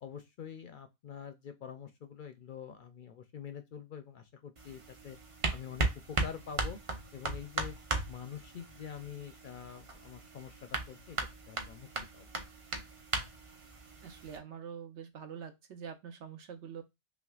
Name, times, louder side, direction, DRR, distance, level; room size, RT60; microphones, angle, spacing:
voice 1, 0.0-5.2 5.5-6.8 7.1-7.7 8.1-11.2 11.5-11.9 12.1-12.3, left 8 dB, 60° left, 0.6 m, -46 dB
sound 1, 4.6-14.4, right 2 dB, 35° right, 0.7 m, -38 dB
voice 2, 14.0-16.8, right 7 dB, 80° right, 1.1 m, -45 dB
5.7 x 2.1 x 2.3 m
omnidirectional pair, 1.2 m